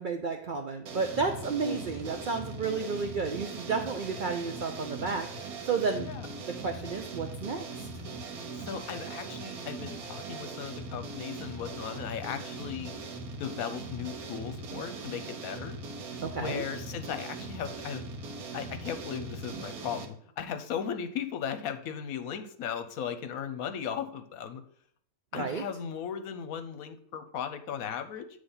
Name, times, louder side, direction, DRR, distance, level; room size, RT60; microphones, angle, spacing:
voice 1, 0.0-6.1 6.5-7.6 16.2-16.6 25.3-25.6, right 4 dB, 65° right, 4 dB, 0.4 m, -32 dB
sound 1, 0.9-20.1, right 3 dB, 85° right, 1.4 m, -40 dB
voice 2, 8.6-13.0 13.4-15.8 16.4-18.0 18.5-24.6 25.3-28.3, left 8 dB, 75° left, 9 dB, 1.1 m, -37 dB
8.2 x 3.4 x 5.4 m, 0.64 s
omnidirectional pair, 1.5 m